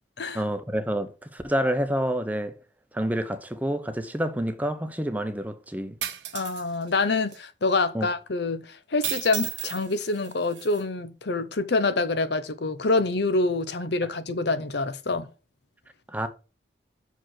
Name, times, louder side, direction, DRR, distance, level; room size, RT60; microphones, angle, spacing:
voice 1, 0.3-2.5 2.9-5.9 7.9-8.1 14.0-14.1 16.1-16.3, equal, 10° right, 0.8 m, -28 dB
sound 1, 6.0-6.6 7.3-7.4 9.0-10.8, right 12 dB, 80° right, 1.0 m, -34 dB
voice 2, 6.3-15.3, left 3 dB, 65° left, 0.8 m, -26 dB
6.4 x 5.0 x 5.8 m
head